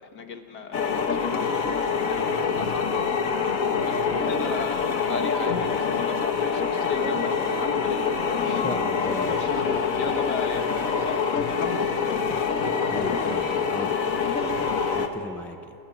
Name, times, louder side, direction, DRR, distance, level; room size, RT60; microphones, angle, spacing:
voice 1, 0.1-3.4 3.9-8.1 8.4-12.5, left 5 dB, 65° left, 6 dB, 2.1 m, -36 dB
sound 1, 0.7-15.1, left 5 dB, 50° left, 1.6 m, -25 dB
voice 2, 8.6-9.4 12.9-14.2 14.4-15.7, left 1 dB, ahead, 7 dB, 0.4 m, -37 dB
28.5 x 23.5 x 6.1 m, 2.8 s
omnidirectional pair, 1.9 m